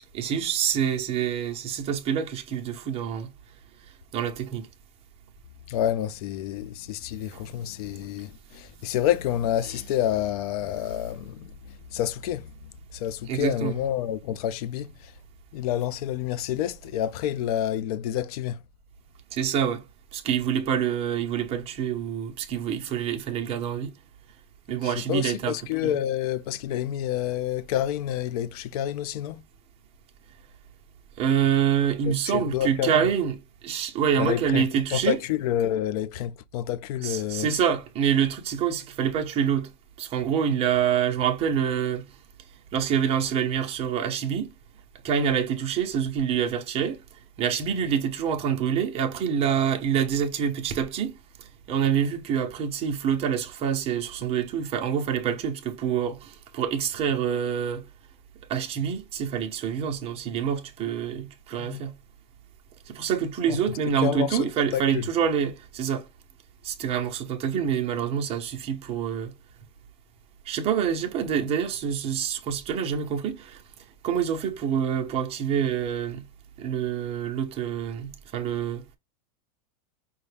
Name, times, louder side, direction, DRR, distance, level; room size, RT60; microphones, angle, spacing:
voice 1, 0.1-3.3 4.1-4.7 13.3-13.8 19.3-19.8 20.1-23.9 24.7-25.6 25.8-26.0 31.2-33.4 33.6-35.2 37.0-39.7 40.0-42.0 42.7-44.5 45.0-47.0 47.4-57.8 58.5-61.9 62.9-66.1 66.6-69.3 70.5-73.6 74.0-76.2 76.6-78.8, right 8 dB, 30° right, 0.8 m, -26 dB
voice 2, 5.7-15.1 15.5-18.6 24.8-29.4 32.1-33.1 34.2-37.5 61.6-61.8 63.5-65.1, left 11 dB, 65° left, 0.5 m, -29 dB
5.5 x 2.3 x 3.3 m
supercardioid pair, 155°, 21 cm